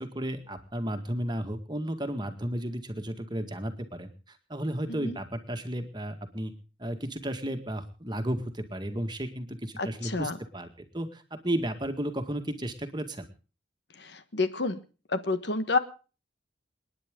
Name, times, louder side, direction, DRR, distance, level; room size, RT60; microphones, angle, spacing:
voice 1, 0.0-6.5 6.8-10.7 10.9-13.3, right 1 dB, 20° right, 7 dB, 1.9 m, -33 dB
voice 2, 9.8-10.4 14.0-14.8 15.1-15.8, left 3 dB, 60° left, 11 dB, 1.3 m, -29 dB
28.5 x 10.0 x 3.7 m, 0.36 s
head